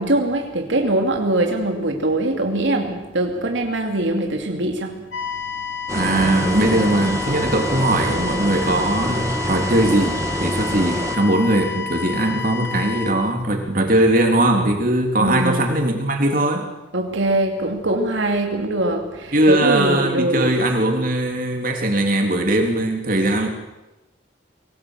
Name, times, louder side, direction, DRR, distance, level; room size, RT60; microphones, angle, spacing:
voice 1, 0.0-5.1 15.2-15.8 16.9-20.6, right 1 dB, 80° right, 2 dB, 2.7 m, -22 dB
sound 1, 5.1-13.1, left 7 dB, 75° left, 5.4 m, -30 dB
sound 2, 5.9-11.2, right 1 dB, 15° right, 2.2 m, -26 dB
voice 2, 5.9-16.7 19.3-23.5, right 1 dB, 45° right, 3 dB, 3.5 m, -20 dB
23.0 x 18.0 x 8.3 m, 1.0 s
head